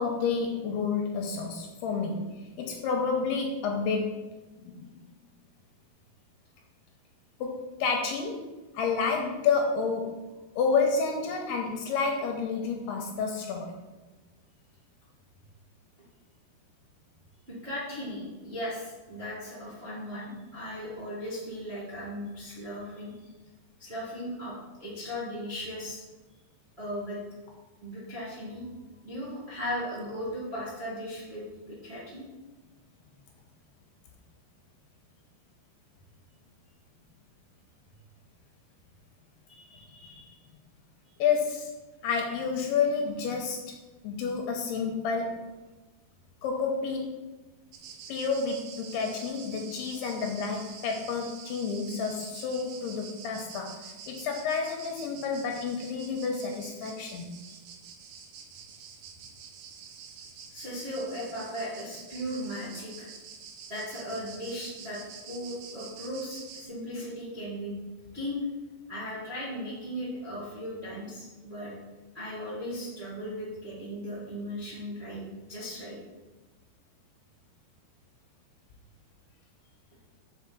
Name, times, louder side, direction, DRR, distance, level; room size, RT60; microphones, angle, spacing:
voice 1, 0.0-2.3 2.6-4.2 4.6-4.9 7.4-8.4 8.7-10.1 10.6-13.7 41.2-41.7 42.0-43.6 44.0-45.4 46.4-47.1 48.1-53.7 54.1-57.3, left 5 dB, 80° left, 1 dB, 2.6 m, -29 dB
voice 2, 17.5-23.3 23.8-24.5 24.8-26.0 26.8-27.2 27.8-28.7 29.0-32.3 39.5-40.4 57.5-57.6 60.5-63.1 63.7-65.0 65.3-67.7 68.1-68.4 68.9-71.7 72.1-75.2 75.5-76.0, equal, 30° right, -9 dB, 1.1 m, -37 dB
sound 1, 47.7-66.7, right 6 dB, 75° right, 3.0 m, -47 dB
5.7 x 5.7 x 6.0 m, 1.2 s
omnidirectional pair, 5.1 m